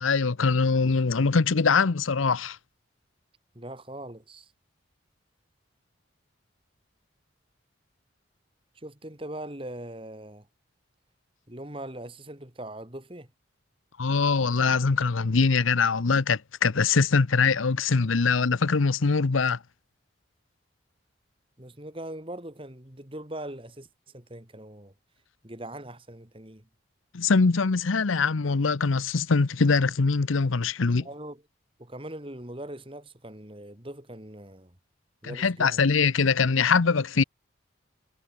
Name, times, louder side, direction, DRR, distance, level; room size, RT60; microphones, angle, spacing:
voice 1, 0.0-2.6 14.0-19.6 27.1-31.1 35.2-37.2, left 4 dB, 90° left, 0.8 m, -23 dB
voice 2, 3.5-4.5 8.7-10.5 11.5-13.3 21.6-24.9 25.4-26.7 31.0-31.4 31.8-34.8 35.2-35.9, right 1 dB, 25° right, 2.7 m, -41 dB
head